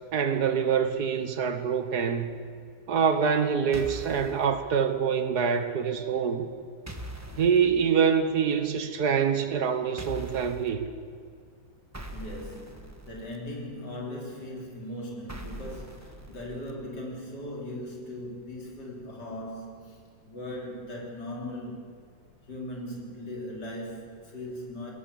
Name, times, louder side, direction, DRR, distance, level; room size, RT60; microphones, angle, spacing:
voice 1, 0.1-2.3 2.9-6.5 7.4-10.9, right 6 dB, 65° right, 1.6 m, -25 dB
sound 1, 3.7-4.4 6.9-7.6 10.0-10.7 11.9-13.4 15.3-16.7, equal, 10° right, 1.1 m, -41 dB
voice 2, 12.1-21.9 22.5-24.9, left 1 dB, 65° left, 4.3 m, -39 dB
21.0 x 18.0 x 7.0 m
omnidirectional pair, 2.0 m